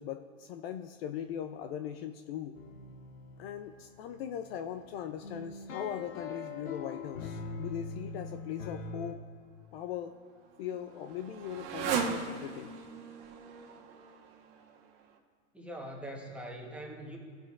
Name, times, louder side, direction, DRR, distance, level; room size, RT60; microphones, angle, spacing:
voice 1, 0.0-2.6 3.4-9.2 9.7-10.1 10.6-12.7, left 9 dB, 50° left, 8 dB, 0.6 m, -40 dB
sound 1, 2.6-9.1, left 4 dB, 85° left, 1.0 m, -42 dB
Motorcycle, 9.8-15.2, right 6 dB, 50° right, 1.3 m, -38 dB
voice 2, 15.5-17.2, right 1 dB, 5° right, 0 dB, 1.3 m, -42 dB
16.0 x 6.8 x 2.4 m, 2.2 s
hypercardioid pair, 115°, 39 cm